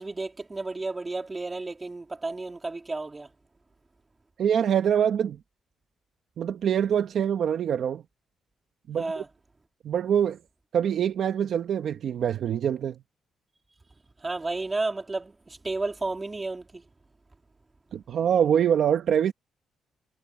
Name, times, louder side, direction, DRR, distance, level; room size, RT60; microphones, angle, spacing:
voice 1, 0.0-3.3 9.0-9.3 14.2-16.8, right 3 dB, 20° right, 3.6 m, -32 dB
voice 2, 4.4-5.4 6.4-8.0 8.9-9.2 9.8-10.4 10.7-13.0 17.9-19.3, right 8 dB, 60° right, 1.2 m, -24 dB
cardioid pair, 135°, 0 cm